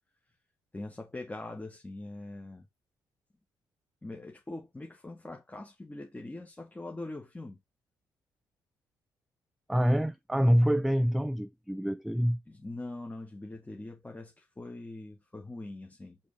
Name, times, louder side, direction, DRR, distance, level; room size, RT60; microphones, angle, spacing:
voice 1, 0.7-2.7 4.0-7.6 12.5-16.2, left 2 dB, 15° left, 1.4 m, -42 dB
voice 2, 9.7-12.4, equal, ahead, 0.4 m, -26 dB
4.9 x 3.7 x 5.2 m
hypercardioid pair, 50°, 10 cm